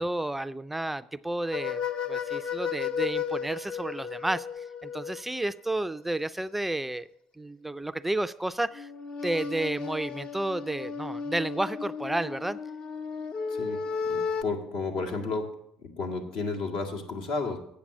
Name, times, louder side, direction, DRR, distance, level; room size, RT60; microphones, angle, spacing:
voice 1, 0.0-1.8 2.1-7.1 7.4-8.9 9.2-12.6, right 1 dB, 10° right, 12 dB, 0.3 m, -31 dB
sound 1, 1.5-5.4 8.7-14.4, left 6 dB, 50° left, 0.6 m, -34 dB
voice 2, 13.5-13.8 14.1-15.5 15.8-17.6, left 3 dB, 80° left, 2 dB, 2.0 m, -32 dB
8.7 x 7.1 x 7.1 m, 0.77 s
supercardioid pair, 85°, 2 cm